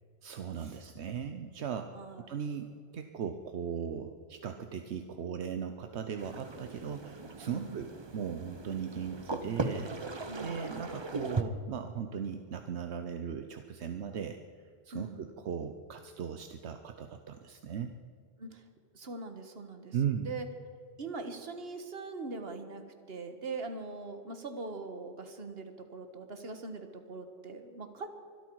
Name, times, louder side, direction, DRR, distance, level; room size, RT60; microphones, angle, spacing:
voice 1, 0.2-9.9 10.4-14.4 14.8-18.0 19.9-20.3, right 7 dB, 80° right, 7 dB, 1.1 m, -38 dB
voice 2, 1.9-2.3 7.5-7.8 10.3-10.7 14.9-15.3 18.4-18.6 18.9-20.5 21.0-28.1, right 3 dB, 65° right, 7 dB, 1.7 m, -42 dB
sound 1, 6.2-11.4, right 3 dB, 25° right, 0.8 m, -38 dB
24.5 x 12.5 x 4.7 m, 2.2 s
omnidirectional pair, 1.1 m